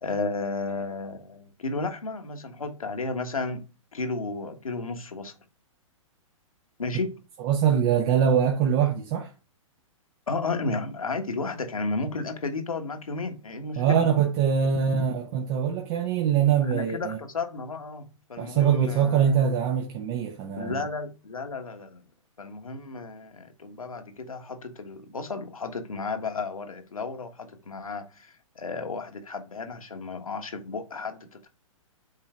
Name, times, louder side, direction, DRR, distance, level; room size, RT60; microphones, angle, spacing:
voice 1, 0.0-3.6 3.9-5.3 6.8-7.2 10.3-14.0 16.6-19.4 20.6-22.0 22.4-31.5, left 3 dB, 90° left, 1.4 m, -33 dB
voice 2, 7.4-9.3 13.8-17.2 18.4-20.9, right 8 dB, 40° right, 1.0 m, -23 dB
8.1 x 3.8 x 3.3 m
hypercardioid pair, 120°, 17 cm